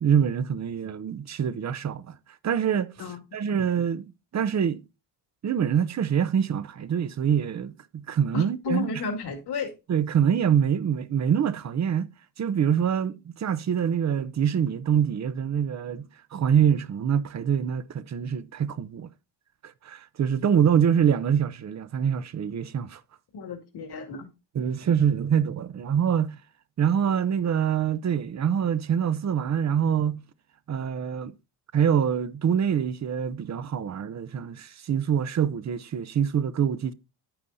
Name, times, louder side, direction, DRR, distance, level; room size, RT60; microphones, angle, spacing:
voice 1, 0.0-2.2 2.4-2.9 3.3-4.8 5.4-8.9 9.9-12.1 12.4-19.1 19.6-23.0 24.5-26.4 26.8-30.2 30.7-31.3 31.7-36.9, right 8 dB, 40° right, 0.7 m, -25 dB
voice 2, 8.3-9.7 23.3-24.3, left 4 dB, 60° left, 2.3 m, -32 dB
9.4 x 8.8 x 2.7 m
cardioid pair, 100°, 44 cm